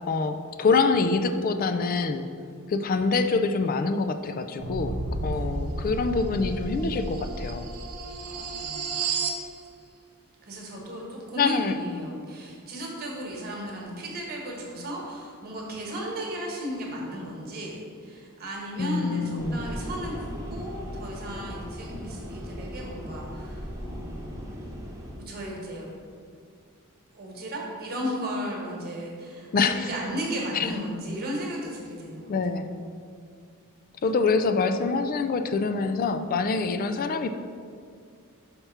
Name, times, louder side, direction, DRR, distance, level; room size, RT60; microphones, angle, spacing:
voice 1, 0.1-2.2 2.7-5.0 5.2-7.7 11.4-11.7 18.8-19.6 29.5-29.9 30.5-30.7 32.3-32.7 34.0-37.3, left 4 dB, 40° left, 9 dB, 0.3 m, -25 dB
sound 1, 4.6-9.4, right 3 dB, 80° right, 0.6 m, -32 dB
voice 2, 8.2-9.0 10.4-24.4 25.1-25.9 27.1-32.3, equal, 45° right, -2 dB, 1.3 m, -35 dB
sound 2, 19.4-25.2, equal, 15° right, 1.0 m, -38 dB
5.8 x 3.4 x 5.6 m, 2.3 s
head